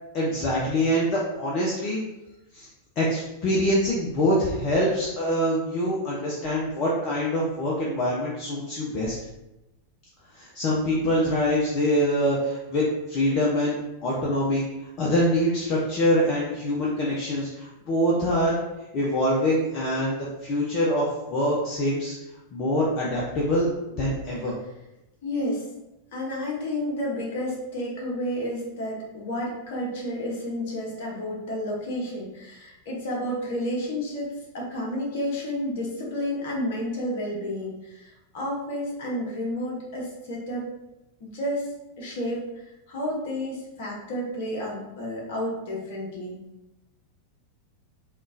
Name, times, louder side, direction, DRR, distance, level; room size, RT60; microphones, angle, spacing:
voice 1, 0.1-2.0 2.5-2.7 3.0-9.2 10.3-13.8 14.0-18.6 18.9-22.2 22.5-23.7 24.0-24.5, equal, 35° left, -4 dB, 0.6 m, -24 dB
voice 2, 25.2-25.6 26.1-34.3 34.5-40.6 41.2-41.7 42.0-46.4, left 1 dB, 55° left, -3 dB, 1.1 m, -31 dB
3.6 x 2.4 x 2.6 m, 0.96 s
figure-of-eight pair, 90°, 0 cm